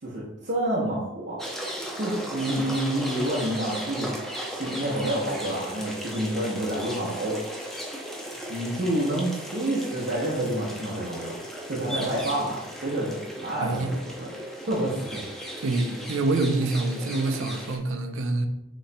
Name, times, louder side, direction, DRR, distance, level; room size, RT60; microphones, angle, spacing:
voice 1, 0.0-1.4 2.0-4.1 4.5-7.4 8.5-11.3 11.7-14.3 14.7-15.4, right 1 dB, 50° right, -7 dB, 0.8 m, -28 dB
sound 1, 1.4-17.8, equal, ahead, 0.5 m, -36 dB
voice 2, 13.6-13.9 15.6-18.5, right 2 dB, 70° right, 7 dB, 0.5 m, -26 dB
6.5 x 3.1 x 2.2 m, 0.94 s
head